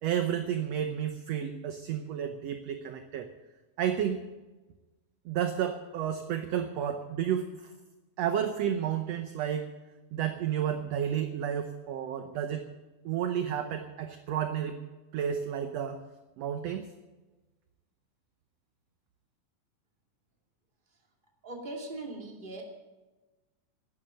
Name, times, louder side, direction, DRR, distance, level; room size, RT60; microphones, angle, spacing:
voice 1, 0.0-3.3 3.8-4.2 5.2-7.6 8.2-9.7 10.1-12.6 13.0-14.8 15.1-16.0 16.4-16.9, right 9 dB, 70° right, 8 dB, 1.7 m, -31 dB
voice 2, 21.4-22.6, right 2 dB, 15° right, 1 dB, 2.5 m, -40 dB
12.0 x 10.5 x 9.0 m, 1.2 s
omnidirectional pair, 3.6 m